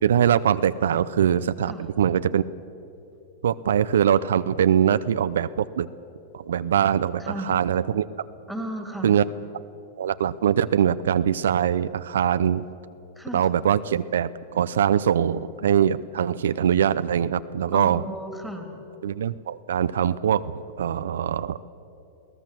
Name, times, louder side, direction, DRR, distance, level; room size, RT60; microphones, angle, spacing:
voice 1, 0.0-2.4 3.4-5.9 6.3-8.1 9.0-9.2 10.0-12.6 13.3-18.0 19.0-20.4 20.8-21.6, right 9 dB, 85° right, 14 dB, 0.5 m, -22 dB
voice 2, 7.2-7.5 8.5-9.1 13.2-13.4 17.7-18.7, equal, ahead, 4 dB, 3.0 m, -34 dB
22.0 x 17.0 x 7.5 m, 2.9 s
hypercardioid pair, 125°, 0 cm